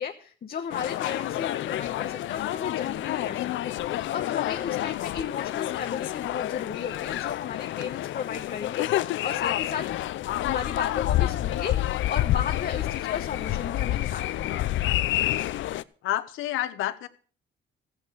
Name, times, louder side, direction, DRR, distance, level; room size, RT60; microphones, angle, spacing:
voice 1, 0.0-9.9 10.3-14.8, left 7 dB, 50° left, 4 dB, 1.2 m, -34 dB
sound 1, 0.7-15.8, left 14 dB, 75° left, 0.5 m, -28 dB
voice 2, 16.0-17.1, left 14 dB, 90° left, 13 dB, 0.9 m, -30 dB
14.0 x 8.2 x 6.1 m, 0.43 s
cardioid pair, 90°, 20 cm